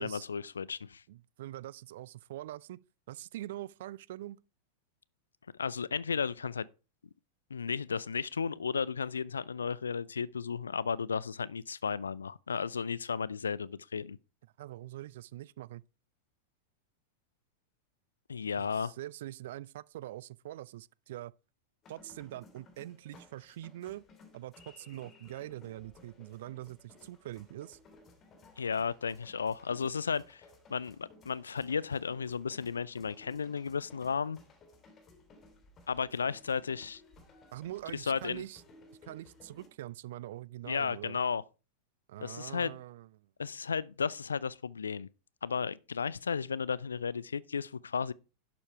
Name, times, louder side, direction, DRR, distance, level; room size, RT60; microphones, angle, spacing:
voice 1, 0.0-1.0 5.6-6.7 7.5-14.2 18.3-18.9 28.6-30.4 30.7-34.4 35.9-37.0 37.9-38.4 40.7-41.4 42.2-42.7 43.4-45.1 45.4-48.1, left 6 dB, 70° left, 0.4 m, -34 dB
voice 2, 1.1-2.8 3.1-4.4 14.6-15.8 18.5-21.3 21.9-24.0 24.3-27.8 37.5-38.6 39.0-41.2 42.1-43.3, right 14 dB, 55° right, 0.4 m, -44 dB
sound 1, 21.8-39.7, left 2 dB, 30° left, 2.9 m, -59 dB
11.5 x 7.1 x 4.5 m
figure-of-eight pair, 90°, 0 cm